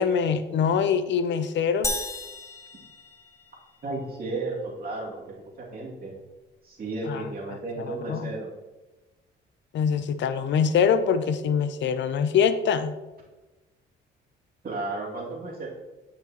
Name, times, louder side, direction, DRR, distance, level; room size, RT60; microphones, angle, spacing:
voice 1, 0.0-2.0 7.1-7.2 7.9-8.3 9.7-13.0, left 7 dB, 65° left, 11 dB, 0.6 m, -24 dB
sound 1, 1.8-3.8, left 2 dB, 15° left, 0.8 m, -34 dB
voice 2, 3.8-6.1 6.6-8.5 14.6-15.7, right 2 dB, 50° right, -3 dB, 2.5 m, -33 dB
9.7 x 5.9 x 3.0 m, 1.1 s
cardioid pair, 90°, 20 cm